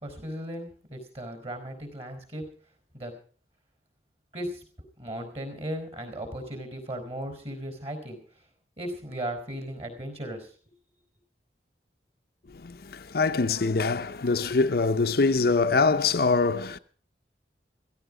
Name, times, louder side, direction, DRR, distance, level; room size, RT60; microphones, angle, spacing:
voice 1, 0.0-2.5 2.9-3.1 4.3-4.6 5.0-8.4 8.8-10.5, right 1 dB, 35° right, 4.5 m, -36 dB
voice 2, 12.5-16.8, left 4 dB, 60° left, 0.6 m, -24 dB
16.0 x 15.0 x 4.9 m
head